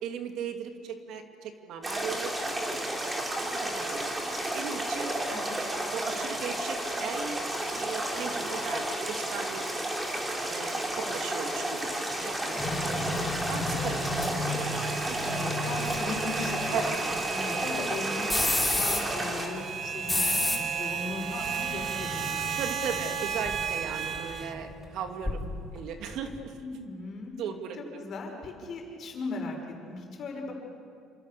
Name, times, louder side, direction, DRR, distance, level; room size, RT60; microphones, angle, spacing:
voice 1, 0.0-2.8 3.1-4.1 4.5-7.4 7.7-9.7 10.5-11.8 12.2-13.2 13.5-14.0 14.9-15.2 16.7-17.0 22.6-25.4 25.7-26.5 27.4-28.0, right 7 dB, 65° right, 5 dB, 2.5 m, -37 dB
sound 1, 1.8-19.5, right 1 dB, 15° right, 3.6 m, -32 dB
sound 2, 12.6-25.8 26.1-26.3, left 2 dB, 5° left, 3.9 m, -33 dB
sound 3, 13.7-24.5, right 7 dB, 40° right, 1.5 m, -35 dB
voice 2, 15.2-22.6 26.6-27.3 27.8-29.6 29.9-30.5, left 3 dB, 45° left, 1 dB, 6.1 m, -38 dB
28.0 x 27.0 x 6.9 m, 2.3 s
cardioid pair, 145°, 0 cm